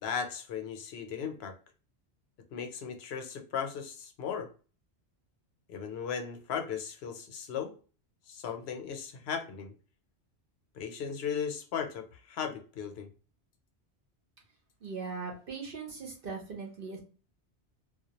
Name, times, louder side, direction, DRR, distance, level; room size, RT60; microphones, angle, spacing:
voice 1, 0.0-1.6 2.5-4.5 5.7-7.7 8.3-9.7 10.7-13.1, left 7 dB, 70° left, 5 dB, 0.8 m, -36 dB
voice 2, 14.8-17.0, right 4 dB, 60° right, 1 dB, 0.9 m, -39 dB
2.2 x 2.2 x 2.8 m, 0.36 s
omnidirectional pair, 1.1 m